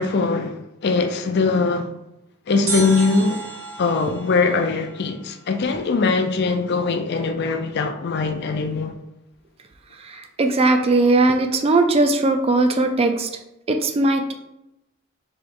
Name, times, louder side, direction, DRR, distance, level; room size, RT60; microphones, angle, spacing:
voice 1, 0.0-1.9 2.5-3.4 3.8-8.9, left 4 dB, 50° left, 0.4 m, -21 dB
sound 1, 2.7-5.7 6.0-6.1, right 3 dB, 85° right, 1.4 m, -33 dB
voice 2, 10.0-13.3 13.7-14.3, right 2 dB, 30° right, 0.4 m, -19 dB
3.2 x 3.0 x 4.7 m
head